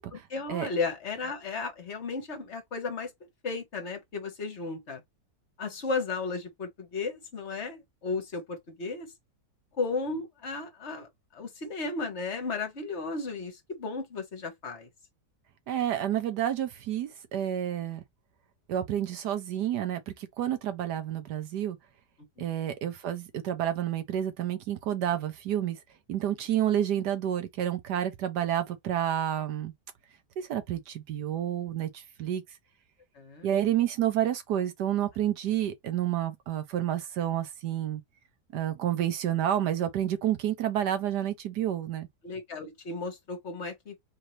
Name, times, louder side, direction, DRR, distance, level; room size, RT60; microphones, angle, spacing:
voice 1, 0.1-3.1 3.4-5.0 5.6-9.1 9.8-14.9 22.4-22.5 33.1-33.5 42.2-44.0, left 4 dB, 45° left, 1.4 m, -34 dB
voice 2, 15.7-18.0 18.7-21.8 22.4-25.8 26.1-29.7 30.4-32.4 33.4-38.0 38.5-42.1, right 11 dB, 80° right, 1.4 m, -29 dB
4.1 x 2.7 x 3.2 m
omnidirectional pair, 1.8 m